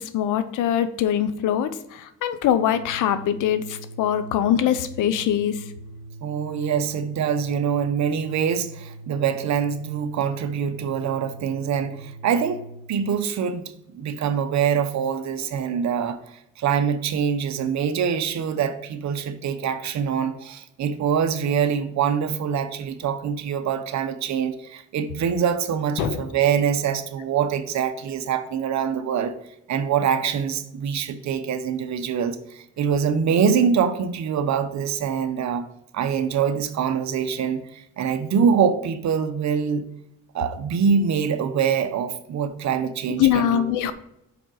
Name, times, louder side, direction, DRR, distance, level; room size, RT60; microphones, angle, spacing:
voice 1, 0.0-5.6 26.0-26.2 43.2-43.9, left 10 dB, 85° left, 0.8 m, -23 dB
Organ, 2.6-13.0, right 2 dB, 45° right, 1.5 m, -42 dB
voice 2, 6.2-12.6 12.9-29.3 29.7-35.7 35.9-39.9 40.3-43.6, right 7 dB, 65° right, 0.9 m, -24 dB
5.1 x 5.0 x 6.2 m
cardioid pair, 90°, 30 cm